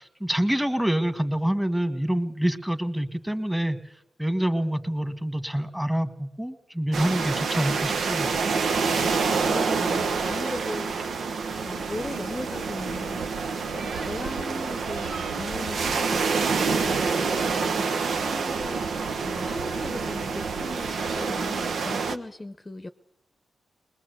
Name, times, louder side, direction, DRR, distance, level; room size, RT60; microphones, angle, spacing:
voice 1, 0.0-3.8 4.2-8.4, right 1 dB, 5° right, 9 dB, 1.8 m, -26 dB
sound 1, 6.9-22.2, right 5 dB, 75° right, 1.2 m, -27 dB
voice 2, 9.0-11.1 11.7-22.9, left 2 dB, 20° left, 8 dB, 0.9 m, -38 dB
21.0 x 20.5 x 8.2 m, 0.80 s
cardioid pair, 75°, 0 cm